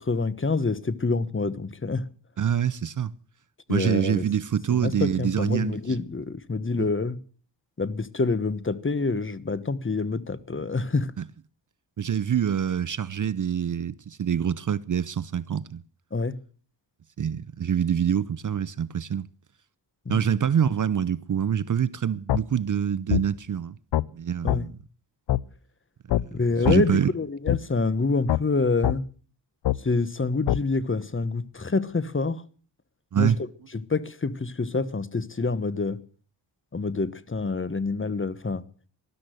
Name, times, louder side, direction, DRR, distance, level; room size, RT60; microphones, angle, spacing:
voice 1, 0.1-2.1 3.7-4.2 4.7-7.2 7.8-11.1 16.1-16.3 20.1-20.2 24.4-24.7 26.3-29.0 29.8-32.4 33.2-33.3 33.7-36.0 36.7-38.6, left 3 dB, 25° left, 1.2 m, -27 dB
voice 2, 2.4-3.1 3.7-5.8 6.8-6.9 11.2-11.3 12.0-15.8 17.2-19.3 20.1-23.8 24.1-24.8 26.2-26.3 26.6-27.1 33.1-33.4, right 8 dB, 45° right, 0.7 m, -25 dB
sound 1, 22.3-22.4 23.1-23.2 23.9-24.1 24.5-24.6 25.3-25.4 26.1-26.2 26.6-26.8 27.5-27.6 28.3-28.4 28.8-29.0 29.6-29.8 30.5-30.6, left 14 dB, 70° left, 0.6 m, -23 dB
13.5 x 12.0 x 7.8 m
cardioid pair, 65°, 44 cm